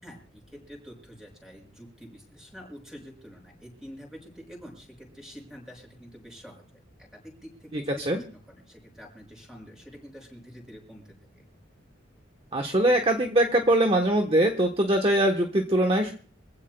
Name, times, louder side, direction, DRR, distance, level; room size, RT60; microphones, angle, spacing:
voice 1, 0.0-6.6 7.1-11.1, equal, ahead, 0 dB, 6.0 m, -47 dB
voice 2, 7.7-8.2 12.5-16.1, right 1 dB, 30° right, 4 dB, 1.1 m, -22 dB
26.0 x 15.5 x 2.2 m, 0.40 s
head